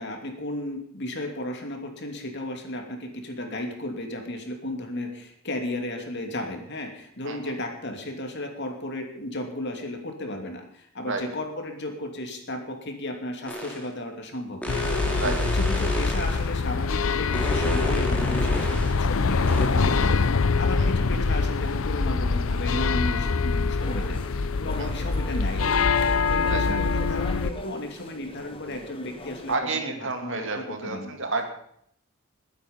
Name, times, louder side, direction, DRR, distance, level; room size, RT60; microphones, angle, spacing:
voice 1, 0.0-25.9 26.3-29.5 29.8-31.1, left 1 dB, 55° left, 3 dB, 2.8 m, -34 dB
sound 1, 13.5-13.9 14.6-16.5 17.3-19.0 19.4-19.7, equal, 5° left, 3.1 m, -31 dB
sound 2, 14.7-27.5, left 4 dB, 70° left, 0.6 m, -24 dB
sound 3, 23.8-29.6, left 1 dB, 25° left, 1.4 m, -40 dB
voice 2, 29.5-31.5, right 3 dB, 60° right, 4 dB, 2.5 m, -30 dB
21.0 x 9.3 x 5.5 m, 0.67 s
head